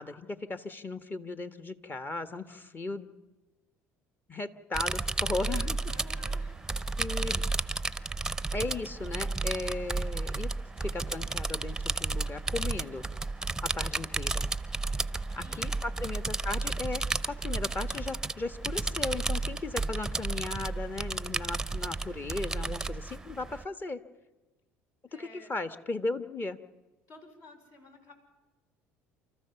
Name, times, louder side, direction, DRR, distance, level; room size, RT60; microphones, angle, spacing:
voice 1, 0.0-3.1 4.3-5.8 7.0-7.4 8.5-10.5 10.8-13.0 13.6-14.5 15.3-24.0 25.1-26.6, left 3 dB, 30° left, 11 dB, 1.4 m, -36 dB
sound 1, 4.7-23.7, right 3 dB, 10° right, 0.7 m, -33 dB
voice 2, 5.9-6.6 15.3-15.8 25.1-25.5 27.1-28.1, left 2 dB, 60° left, 3 dB, 5.2 m, -52 dB
29.0 x 14.0 x 7.0 m, 1.1 s
hypercardioid pair, 75°, 7 cm